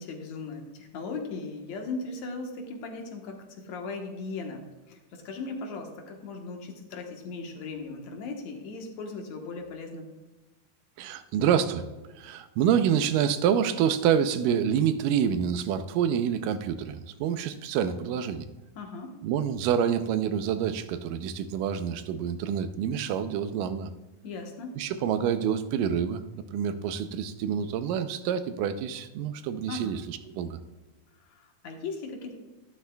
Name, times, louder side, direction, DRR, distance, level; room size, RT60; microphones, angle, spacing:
voice 1, 0.0-10.1 18.8-19.2 24.2-24.8 29.7-29.9 31.3-32.3, left 3 dB, 65° left, 2 dB, 2.3 m, -38 dB
voice 2, 11.0-11.9 12.2-18.5 19.2-23.9 24.8-26.2 26.5-30.6, right 8 dB, 85° right, 10 dB, 2.3 m, -27 dB
12.5 x 12.0 x 2.3 m, 1.2 s
omnidirectional pair, 3.7 m